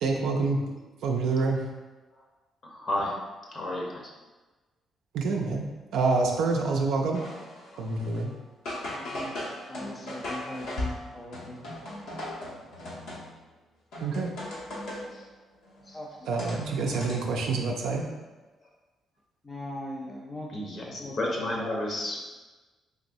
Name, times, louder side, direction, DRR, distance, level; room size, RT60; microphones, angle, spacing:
voice 1, 0.0-0.6 1.0-1.6 5.1-5.6 5.9-7.2 7.8-8.3 14.0-14.3 16.3-18.0, right 3 dB, 85° right, 0 dB, 0.3 m, -27 dB
voice 2, 2.6-3.2 3.5-4.0 7.7-7.9 15.1-15.2 20.5-22.2, left 1 dB, 55° left, -1 dB, 0.8 m, -32 dB
sound 1, 7.1-8.3 8.7-13.5 13.9-15.2 15.6-17.1, left 1 dB, 85° left, 1.0 m, -38 dB
voice 3, 8.9-9.3 9.7-11.7 15.9-16.3 19.4-20.5 21.0-21.3, left 1 dB, 25° left, -3 dB, 0.6 m, -40 dB
3.5 x 3.0 x 2.6 m, 1.2 s
cardioid pair, 90°, 0 cm